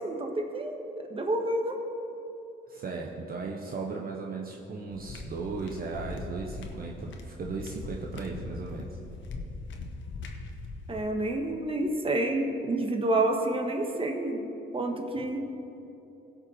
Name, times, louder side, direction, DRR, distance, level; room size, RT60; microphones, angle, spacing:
voice 1, 0.0-1.8 10.9-14.4 14.7-15.4, right 2 dB, 25° right, 3 dB, 1.4 m, -29 dB
voice 2, 2.7-9.0, right 4 dB, 50° right, -1 dB, 1.0 m, -36 dB
sound 1, 4.9-11.1, left 3 dB, 70° left, 1.2 m, -41 dB
16.5 x 5.6 x 4.4 m, 2.9 s
cardioid pair, 90°, 20 cm